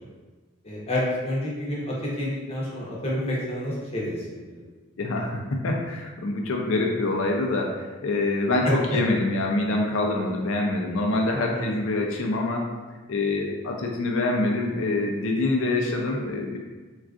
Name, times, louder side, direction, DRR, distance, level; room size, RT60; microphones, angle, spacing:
voice 1, 0.6-4.6 8.6-9.0 11.5-11.8, left 1 dB, 30° left, -5 dB, 0.7 m, -29 dB
voice 2, 5.0-12.7 13.1-16.6, left 2 dB, 80° left, 1 dB, 0.4 m, -25 dB
3.5 x 2.3 x 2.4 m, 1.3 s
head